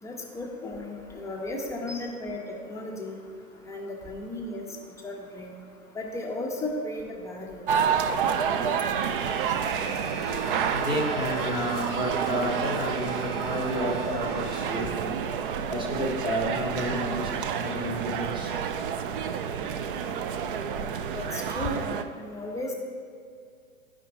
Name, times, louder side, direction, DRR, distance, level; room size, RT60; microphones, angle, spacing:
voice 1, 0.0-3.2 3.7-5.5 5.9-7.7 21.1-21.8 22.2-22.7, left 1 dB, 5° left, -1 dB, 0.6 m, -35 dB
sound 1, 7.7-22.0, right 7 dB, 40° right, 0.4 m, -29 dB
Bowed string instrument, 9.0-15.0, left 5 dB, 80° left, 0.6 m, -45 dB
voice 2, 10.7-15.1 15.7-18.5, equal, 10° right, 1 dB, 1.0 m, -31 dB
11.0 x 5.1 x 3.5 m, 2.3 s
figure-of-eight pair, 110°, 42 cm